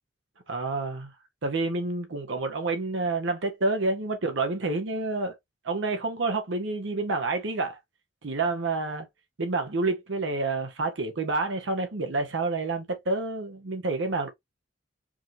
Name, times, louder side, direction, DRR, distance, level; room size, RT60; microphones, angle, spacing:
voice 1, 0.5-1.1 1.4-5.3 5.6-7.8 8.2-9.1 9.4-14.3, right 3 dB, 75° right, 0.8 m, -28 dB
4.8 x 2.7 x 2.6 m
head